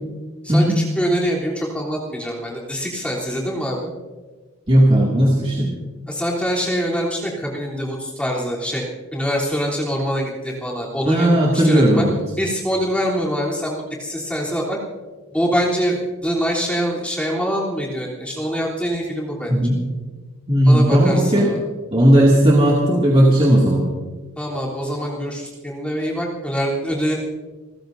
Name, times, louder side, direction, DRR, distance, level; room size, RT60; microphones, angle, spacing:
voice 1, 0.4-3.9 6.1-8.8 9.1-12.1 12.4-14.8 15.3-19.7 20.6-21.6 24.4-27.1, equal, 5° left, -4 dB, 3.3 m, -24 dB
voice 2, 4.7-5.7 11.1-12.2 19.5-19.8 20.5-21.5 21.9-23.8, right 1 dB, 25° right, -4 dB, 2.4 m, -15 dB
29.5 x 15.0 x 2.7 m, 1.3 s
head